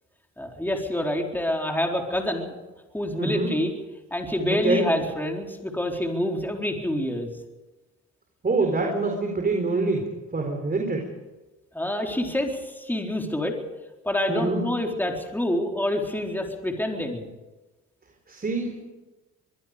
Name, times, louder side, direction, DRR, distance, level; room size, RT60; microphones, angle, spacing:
voice 1, 0.4-2.5 2.9-3.7 4.1-7.3 11.7-13.6 14.0-17.3, left 1 dB, 5° left, 1 dB, 4.1 m, -27 dB
voice 2, 3.2-3.5 4.5-4.9 8.4-11.1 14.3-14.7 18.3-18.8, right 3 dB, 30° right, 2 dB, 4.3 m, -25 dB
23.5 x 22.5 x 5.2 m, 1.1 s
cardioid pair, 90°, 30 cm